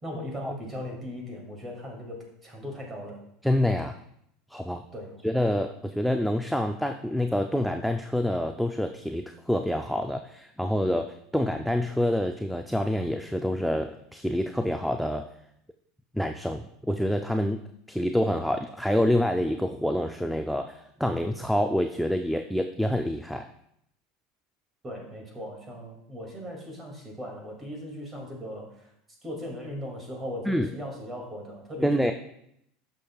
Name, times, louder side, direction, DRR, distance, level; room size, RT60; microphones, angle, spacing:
voice 1, 0.0-3.2 4.9-5.2 24.8-28.9 29.2-32.1, equal, 15° right, 0 dB, 2.3 m, -38 dB
voice 2, 3.4-4.0 4.5-4.9 5.2-15.3 16.1-17.6 17.9-23.5 30.5-30.7 31.8-32.1, left 1 dB, ahead, 5 dB, 0.3 m, -27 dB
12.0 x 6.6 x 2.3 m, 0.74 s
supercardioid pair, 145°, 0 cm